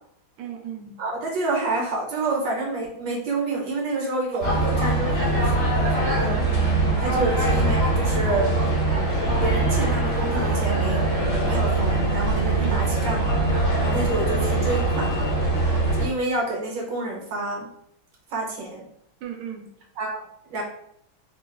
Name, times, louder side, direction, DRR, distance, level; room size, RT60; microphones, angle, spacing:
voice 1, 0.4-1.0 4.3-4.9 7.2-7.3 12.6-12.9 14.3-14.5 19.2-19.7, right 9 dB, 85° right, 3 dB, 1.4 m, -36 dB
voice 2, 1.0-6.4 7.0-8.5 8.8-13.3 13.8-15.4 15.9-17.7 18.3-18.8 20.0-20.2 20.5-20.6, right 2 dB, 70° right, -2 dB, 1.3 m, -28 dB
sound 1, 4.4-16.1, right 2 dB, 80° left, 1.7 m, -22 dB
3.7 x 2.2 x 2.3 m, 0.73 s
omnidirectional pair, 2.3 m